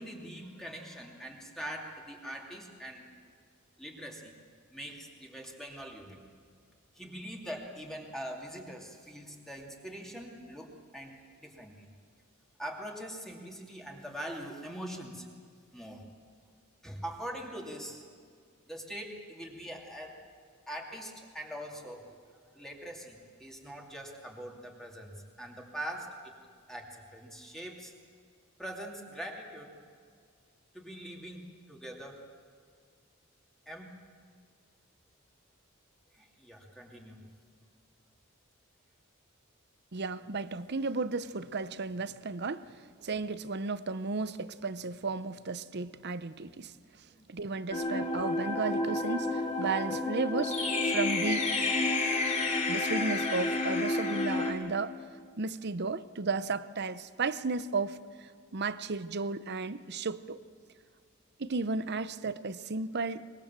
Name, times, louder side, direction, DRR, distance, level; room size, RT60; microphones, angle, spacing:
voice 1, 0.0-3.0 3.8-4.3 4.7-6.2 6.9-11.9 12.6-15.3 15.7-16.1 16.8-18.1 18.7-20.2 20.7-26.3 26.7-27.9 28.6-29.7 30.7-32.2 33.7-34.0 36.1-37.3 46.8-47.5, equal, ahead, -1 dB, 2.8 m, -43 dB
voice 2, 39.9-42.7 43.0-46.7 47.3-51.5 52.7-54.9 55.4-60.4 61.4-63.3, right 4 dB, 55° right, 14 dB, 0.8 m, -34 dB
sound 1, 47.7-54.5, left 2 dB, 35° left, 2.9 m, -30 dB
24.0 x 22.0 x 7.6 m, 2.1 s
head